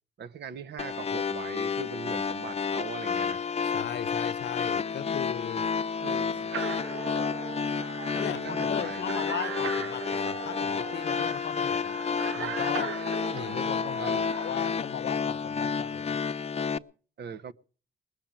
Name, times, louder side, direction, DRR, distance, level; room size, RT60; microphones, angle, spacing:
voice 1, 0.2-3.4 6.0-6.5 8.1-9.0 14.0-14.3 17.2-17.5, right 6 dB, 60° right, 1.1 m, -40 dB
sound 1, 0.8-16.8, left 6 dB, 30° left, 0.8 m, -30 dB
voice 2, 3.7-5.7 8.1-12.0 12.3-13.0 13.3-16.2, left 10 dB, 60° left, 0.9 m, -37 dB
sound 2, 6.5-14.7, right 9 dB, 85° right, 0.8 m, -39 dB
20.5 x 7.1 x 9.0 m
cardioid pair, 90°, 20 cm